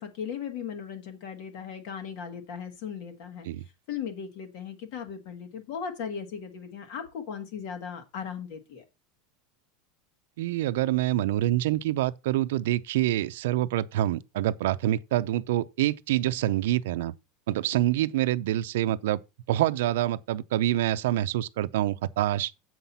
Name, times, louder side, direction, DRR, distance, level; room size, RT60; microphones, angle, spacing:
voice 1, 0.0-3.5 3.9-8.8, left 7 dB, 50° left, 1.7 m, -37 dB
voice 2, 10.4-17.1 17.5-19.2 19.5-22.5, right 14 dB, 80° right, 0.5 m, -26 dB
7.9 x 5.8 x 5.4 m
supercardioid pair, 175°, 0 cm